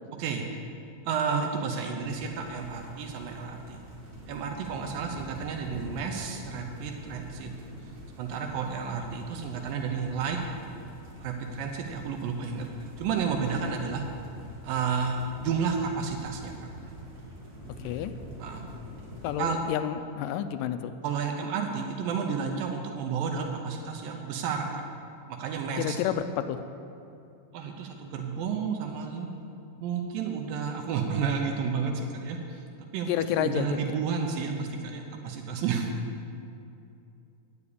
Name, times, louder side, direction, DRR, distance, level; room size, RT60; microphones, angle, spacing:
voice 1, 0.2-0.6 1.1-3.8 4.3-7.5 8.2-10.4 11.2-12.7 13.0-14.1 14.6-16.7 18.4-18.7 19.4-19.6 21.0-24.8 25.3-26.0 27.5-29.3 29.8-33.1 33.4-35.9, right 6 dB, 85° right, 3 dB, 2.5 m, -31 dB
sound 1, 2.0-19.4, equal, 45° right, 1.4 m, -45 dB
voice 2, 19.2-20.9 25.8-26.6 33.1-33.7, left 10 dB, 80° left, 10 dB, 2.1 m, -29 dB
9.6 x 7.0 x 8.5 m, 2.6 s
omnidirectional pair, 4.0 m